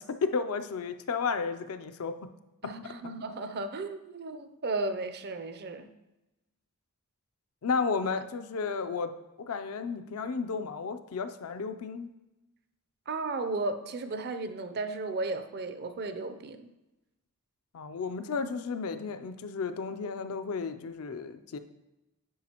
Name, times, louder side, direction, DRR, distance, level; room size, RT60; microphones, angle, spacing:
voice 1, 0.0-2.3 7.6-9.1 9.4-12.1 17.7-21.6, left 5 dB, 70° left, 9 dB, 0.5 m, -33 dB
voice 2, 2.6-5.9 13.1-16.7, right 3 dB, 45° right, 9 dB, 0.5 m, -34 dB
10.0 x 4.8 x 2.9 m, 1.0 s
head